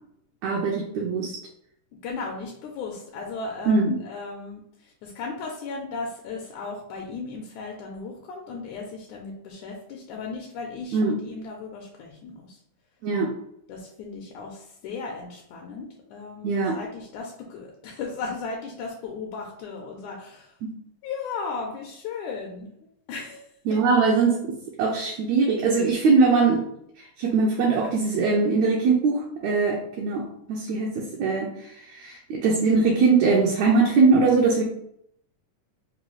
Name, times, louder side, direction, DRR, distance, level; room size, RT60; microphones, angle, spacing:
voice 1, 0.4-1.4 3.7-4.0 10.9-11.2 13.0-13.3 16.4-16.8 23.7-26.7 27.0-34.6, right 4 dB, 80° right, -1 dB, 1.6 m, -22 dB
voice 2, 1.9-11.0 11.2-12.6 13.7-20.6 21.0-22.7 23.1-23.8, left 4 dB, 80° left, 0 dB, 1.9 m, -36 dB
5.4 x 2.2 x 3.1 m, 0.72 s
omnidirectional pair, 3.8 m